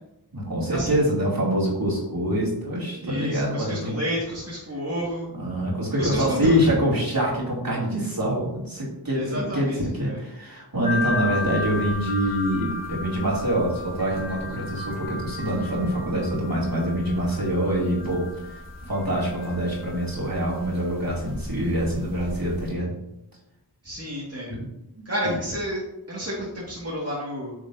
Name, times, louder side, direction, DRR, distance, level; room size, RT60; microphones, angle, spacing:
voice 1, 0.3-4.0 5.4-22.9 24.5-24.6 25.2-25.3, equal, 60° right, -5 dB, 2.8 m, -25 dB
voice 2, 3.0-5.3 6.0-6.7 9.1-10.2 23.8-24.6 25.1-25.8 26.1-27.5, equal, 35° right, -6 dB, 2.0 m, -30 dB
sound 1, 10.8-22.7, left 2 dB, 20° left, 2.6 m, -35 dB
8.5 x 6.4 x 2.7 m, 0.85 s
wide cardioid pair, 45°, 40 cm